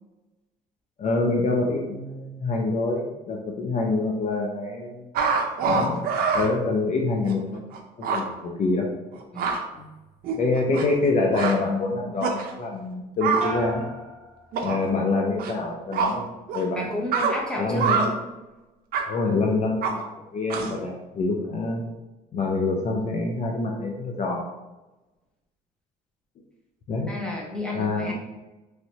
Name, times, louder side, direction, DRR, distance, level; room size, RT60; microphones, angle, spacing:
voice 1, 1.0-5.0 5.6-6.1 6.3-7.6 8.0-8.9 10.4-13.9 14.6-16.3 16.5-16.8 17.6-18.0 19.1-20.0 20.3-21.8 22.3-24.4 26.9-27.1 27.7-28.1, left 3 dB, 45° left, 0 dB, 0.5 m, -26 dB
sound 1, 5.1-6.5 7.2-7.3 7.7-7.8 8.0-8.2 9.1-9.6 10.2-11.1 11.3-11.5 12.2-12.5 13.2-13.5 14.5-14.8 15.4-15.5 15.9-16.1 16.5-16.6 17.1-17.3 17.8-18.1 18.9-19.0 19.8-19.9 20.5-20.8, right 5 dB, 65° right, 0.5 m, -25 dB
sound 2, 13.4-15.1 15.5-16.1, right 1 dB, 45° right, 0.9 m, -38 dB
voice 2, 16.7-18.1 27.0-28.1, left 1 dB, 5° left, -3 dB, 0.8 m, -31 dB
3.1 x 2.7 x 2.9 m, 1.1 s
cardioid pair, 110°, 17 cm